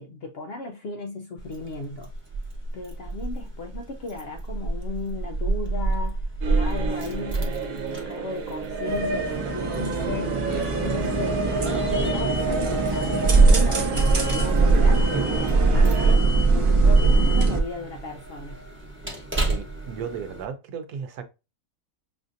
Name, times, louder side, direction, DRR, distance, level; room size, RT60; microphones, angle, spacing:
voice 1, 0.0-2.1 2.7-10.5 10.8-16.2 16.5-18.7, left 3 dB, 65° left, 0.6 m, -36 dB
Keys jangling, 1.4-20.4, right 3 dB, 10° right, 0.8 m, -24 dB
sound 1, 6.4-16.1, right 4 dB, 70° right, 1.2 m, -31 dB
sound 2, 8.8-17.6, right 3 dB, 50° right, 0.3 m, -28 dB
voice 2, 19.4-21.2, right 7 dB, 90° right, 1.2 m, -35 dB
5.5 x 2.6 x 2.5 m
omnidirectional pair, 1.6 m